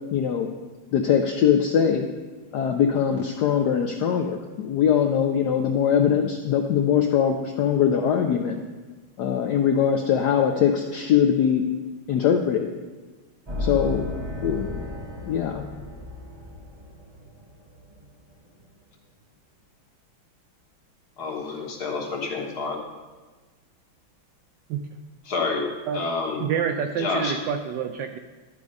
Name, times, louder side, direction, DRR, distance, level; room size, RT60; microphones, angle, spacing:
voice 1, 0.1-0.5 0.9-2.1 2.5-8.6 9.2-11.6 12.1-12.7 13.6-14.1 14.4-14.8 15.3-15.6, left 8 dB, 75° left, 4 dB, 0.9 m, -22 dB
sound 1, 13.5-18.2, left 2 dB, 45° right, 0.3 m, -34 dB
voice 2, 21.2-22.8 25.3-25.6 25.9-26.4 27.0-27.4, left 4 dB, 55° left, 1 dB, 1.5 m, -28 dB
voice 3, 26.4-28.2, right 7 dB, 75° right, 6 dB, 1.0 m, -28 dB
12.0 x 4.9 x 5.2 m, 1.3 s
omnidirectional pair, 2.3 m